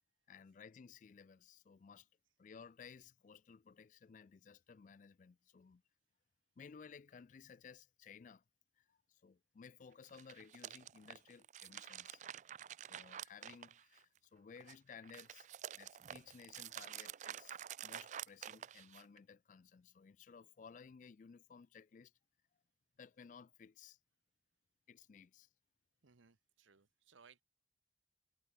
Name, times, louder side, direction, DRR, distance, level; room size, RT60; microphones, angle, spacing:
voice 1, 0.3-2.1 2.4-5.8 6.6-8.4 8.8-12.2 12.8-15.5 15.7-22.1 23.0-24.0 24.9-25.5, left 6 dB, 40° left, 0.3 m, -58 dB
sound 1, 10.0-14.2 14.6-19.2, right 10 dB, 40° right, 0.3 m, -49 dB
voice 2, 26.0-27.4, right 5 dB, 90° right, 1.0 m, -66 dB
head